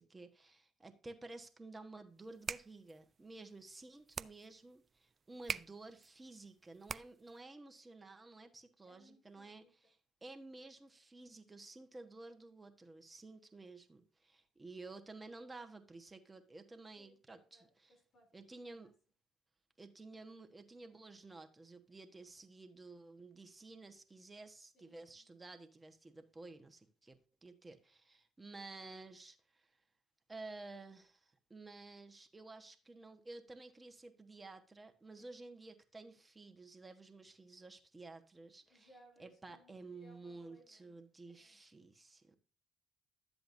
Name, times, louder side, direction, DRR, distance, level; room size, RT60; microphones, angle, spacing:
voice 1, 0.0-10.0 10.2-17.9 18.3-18.9 19.8-29.7 30.3-38.9 39.2-42.4, right 3 dB, 20° right, 6 dB, 1.3 m, -53 dB
sound 1, 2.2-7.4, right 5 dB, 40° right, 0.4 m, -46 dB
voice 2, 8.8-9.7 17.0-18.4 18.7-18.9 24.7-25.3 35.2-35.4 38.6-41.0 41.3-41.6, right 1 dB, 65° left, 0 dB, 3.4 m, -66 dB
12.0 x 7.8 x 2.7 m, 0.36 s
supercardioid pair, 60°, 0 cm